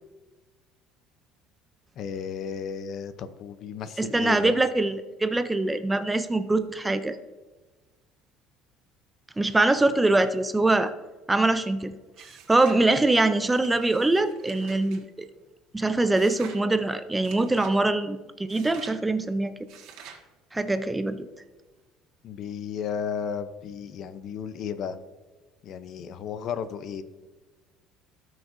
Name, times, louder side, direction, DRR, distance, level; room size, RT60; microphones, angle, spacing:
voice 1, 2.0-4.5 22.2-25.0 25.6-27.0, left 7 dB, 50° left, 12 dB, 0.6 m, -34 dB
voice 2, 4.0-4.9 5.2-7.2 9.4-10.9 11.3-11.9 12.2-15.0 15.7-19.5 20.5-21.3, right 2 dB, 10° right, 11 dB, 0.4 m, -23 dB
sound 1, 12.1-12.8 13.4-15.0 16.1-16.6 17.2-17.8 18.5-19.0 19.7-20.2, right 7 dB, 70° right, 1.7 m, -48 dB
18.0 x 6.2 x 2.6 m, 1.3 s
cardioid pair, 140°, 0 cm